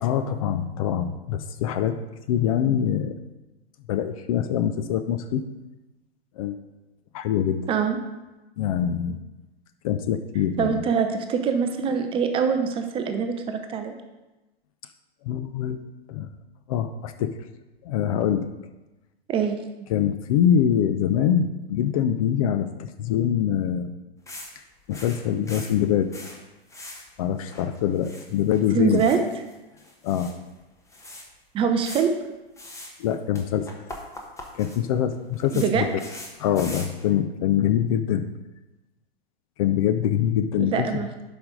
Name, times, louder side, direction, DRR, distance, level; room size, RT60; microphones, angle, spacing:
voice 1, 0.0-2.0 2.3-3.1 3.9-5.4 6.4-6.6 7.1-7.6 8.6-9.2 9.8-10.8 15.2-15.8 16.1-16.3 16.7-17.4 17.8-18.5 19.9-23.9 24.9-26.1 27.2-29.0 30.0-30.3 33.0-33.7 34.5-35.9 36.4-38.2 39.6-41.0, left 9 dB, 35° left, 9 dB, 0.4 m, -24 dB
voice 2, 7.7-8.0 10.6-13.9 19.3-19.6 28.7-29.2 31.5-32.1 35.5-35.9 40.6-41.1, right 6 dB, 15° right, 6 dB, 0.5 m, -24 dB
sound 1, 24.3-24.5 24.8-26.4 26.7-27.1 27.4-28.6 28.9-30.3 30.6-30.7 30.9-31.2 31.8-32.0 32.6-33.1 33.3-37.1, left 2 dB, 10° left, 1.1 m, -41 dB
11.5 x 5.2 x 3.8 m, 1.1 s
figure-of-eight pair, 100°, 31 cm